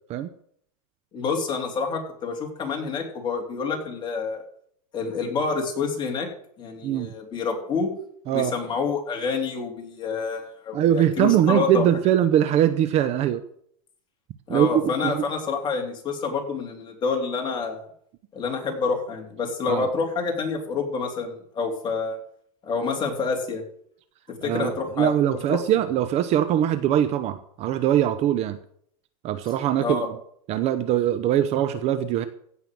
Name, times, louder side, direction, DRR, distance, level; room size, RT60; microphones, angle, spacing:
voice 1, 1.1-4.4 4.9-6.3 6.6-7.9 8.3-11.8 14.5-17.9 18.3-22.2 22.6-23.6 24.4-25.8 29.8-30.1, left 4 dB, 25° left, 2 dB, 3.3 m, -28 dB
voice 2, 6.8-7.1 8.3-8.5 10.7-13.4 14.5-15.2 19.7-19.9 24.4-28.6 29.2-30.0 30.5-32.3, right 11 dB, 35° right, 11 dB, 0.8 m, -22 dB
15.5 x 5.6 x 7.6 m, 0.65 s
supercardioid pair, 140°, 18 cm